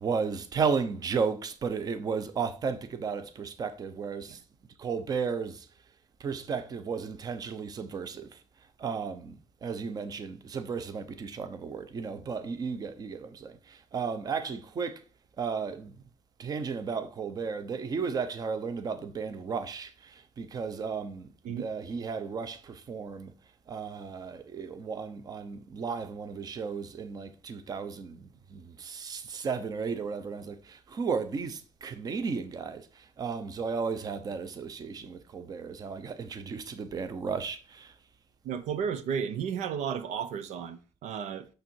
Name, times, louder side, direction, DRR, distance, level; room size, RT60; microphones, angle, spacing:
voice 1, 0.0-4.4 4.8-5.7 6.2-8.4 8.8-15.0 15.4-15.9 16.4-23.3 23.7-37.9, right 5 dB, 30° right, 0.9 m, -34 dB
voice 2, 38.4-41.5, right 7 dB, 75° right, 0.8 m, -33 dB
6.7 x 6.6 x 4.6 m
cardioid pair, 165°, 12 cm